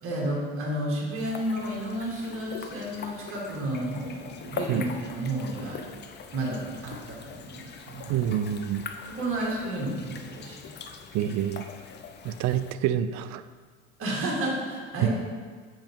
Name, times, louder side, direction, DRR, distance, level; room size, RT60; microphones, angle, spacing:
voice 1, 0.0-5.8 6.3-8.1 9.1-10.7 14.0-15.1, right 1 dB, 40° right, -4 dB, 1.9 m, -31 dB
sound 1, 1.1-12.7, left 5 dB, 30° left, 0.5 m, -42 dB
voice 2, 8.1-8.8 11.1-11.7 12.2-13.4 15.0-15.1, right 10 dB, 55° right, 13 dB, 0.4 m, -27 dB
7.7 x 5.3 x 3.6 m, 1.5 s
supercardioid pair, 120°, 34 cm